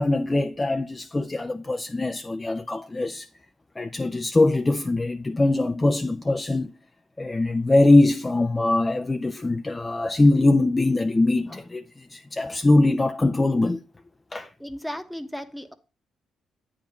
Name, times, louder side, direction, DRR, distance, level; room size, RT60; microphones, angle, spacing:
voice 1, 0.0-3.3 3.8-6.7 7.2-13.8 14.3-14.5, left 2 dB, 20° left, 0.5 m, -22 dB
voice 2, 14.6-15.7, equal, ahead, 1.0 m, -35 dB
8.9 x 3.7 x 6.1 m
cardioid pair, 90°, 0 cm